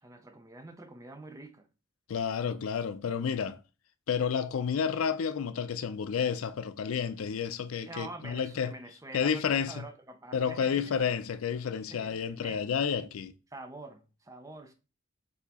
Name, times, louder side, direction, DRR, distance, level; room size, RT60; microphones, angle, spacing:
voice 1, 0.0-1.7 7.9-11.1 11.9-12.7 13.5-14.7, right 2 dB, 15° right, 0.5 m, -46 dB
voice 2, 2.1-3.6 4.1-8.7 9.1-9.8 10.3-13.3, left 7 dB, 90° left, 0.4 m, -30 dB
4.2 x 2.7 x 4.1 m
head